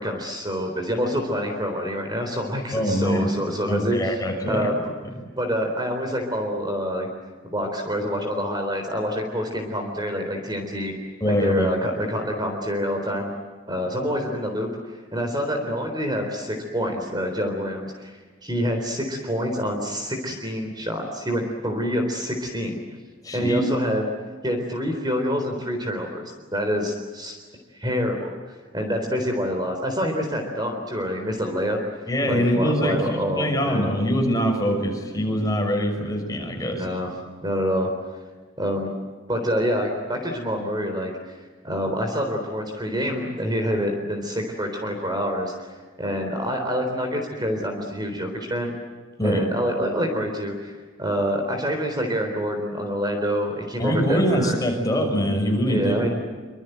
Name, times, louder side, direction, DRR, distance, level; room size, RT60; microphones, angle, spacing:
voice 1, 0.0-4.0 4.5-4.8 5.4-7.1 7.4-10.9 11.3-13.3 13.7-22.8 23.3-24.0 24.4-27.4 27.7-31.8 32.3-33.9 36.7-37.1 37.4-37.9 38.6-38.9 39.3-48.7 49.2-54.6 55.7-56.2, equal, 20° right, 3 dB, 3.8 m, -27 dB
voice 2, 2.7-3.3 3.7-4.7 11.2-11.7 23.2-23.6 32.1-36.9 49.2-49.4 53.8-56.0, equal, 15° left, 2 dB, 6.0 m, -23 dB
26.0 x 25.5 x 8.0 m, 1.5 s
head